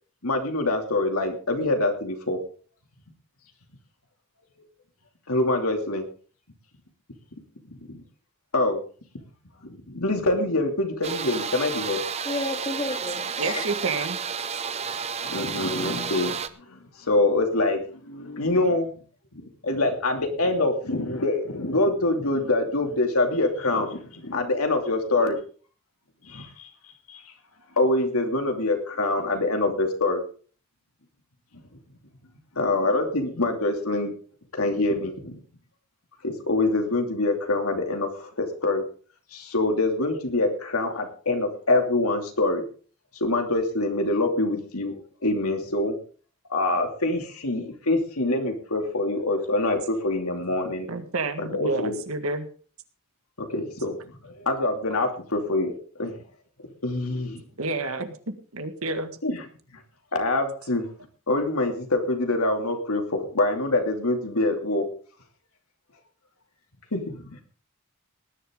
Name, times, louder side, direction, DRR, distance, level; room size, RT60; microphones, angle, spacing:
voice 1, 0.2-2.4 5.3-6.0 7.9-8.0 8.5-8.8 9.6-12.0 15.2-18.9 19.3-25.4 26.2-27.2 27.8-30.2 32.6-34.1 34.5-35.4 36.2-38.8 39.3-42.6 43.1-45.0 45.2-46.0 46.5-50.9 51.5-52.0 53.4-55.7 56.0-56.2 56.8-57.4 59.2-59.4 60.1-60.9 61.3-64.9 66.9-67.4, left 2 dB, 85° left, 3 dB, 2.8 m, -25 dB
sound 1, 11.0-16.5, right 6 dB, 30° right, 0.6 m, -31 dB
voice 2, 12.2-13.6, left 2 dB, 25° left, 1 dB, 2.9 m, -31 dB
voice 3, 13.4-14.2 14.5-14.6 50.9-52.5 54.9-55.0 57.6-59.2, right 3 dB, 80° right, 8 dB, 1.8 m, -29 dB
19.0 x 11.0 x 3.8 m, 0.42 s
head